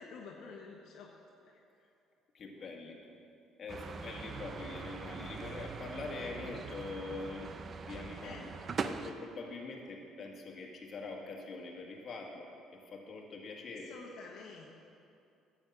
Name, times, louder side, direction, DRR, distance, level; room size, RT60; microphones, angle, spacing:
voice 1, 0.0-1.9 5.4-5.7 8.2-8.5 13.7-14.7, left 4 dB, 70° left, -1 dB, 1.1 m, -50 dB
voice 2, 2.3-3.0 3.6-8.5 8.7-13.9, left 3 dB, 40° left, 0 dB, 1.8 m, -44 dB
sound 1, 3.7-9.1, right 5 dB, 40° right, 0.5 m, -42 dB
10.5 x 7.3 x 7.3 m, 2.6 s
cardioid pair, 115°, 0 cm